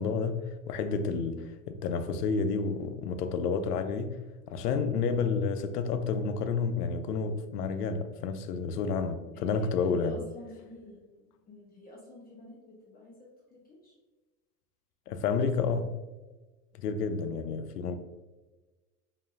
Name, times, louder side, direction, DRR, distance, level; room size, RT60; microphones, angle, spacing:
voice 1, 0.0-4.2 4.5-10.2 15.1-15.9 16.8-18.0, left 5 dB, 90° left, 0.6 m, -30 dB
voice 2, 9.3-13.9, left 1 dB, 20° left, 0.8 m, -49 dB
5.2 x 2.5 x 2.6 m
hypercardioid pair, 110°, 46 cm